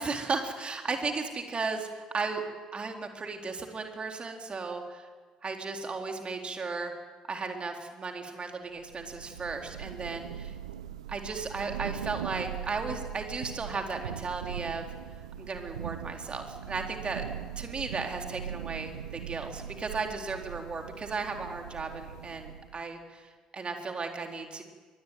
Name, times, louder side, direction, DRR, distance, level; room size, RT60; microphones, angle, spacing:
voice 1, 0.0-2.4 2.7-5.1 5.4-6.9 7.3-10.5 11.1-14.9 15.4-17.2 17.6-24.6, right 4 dB, 30° right, 3 dB, 3.9 m, -35 dB
Thunder / Rain, 8.8-22.9, right 9 dB, 75° right, 1.1 m, -40 dB
23.5 x 20.0 x 9.4 m, 1.5 s
figure-of-eight pair, 55°, 4 cm